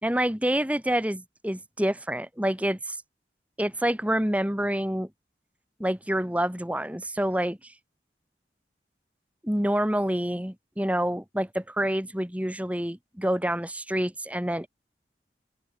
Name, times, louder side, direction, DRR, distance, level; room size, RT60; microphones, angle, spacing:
voice 1, 0.0-3.0 3.6-5.1 5.8-7.7 9.4-14.7, equal, 10° right, 2.0 m, -27 dB
open air
head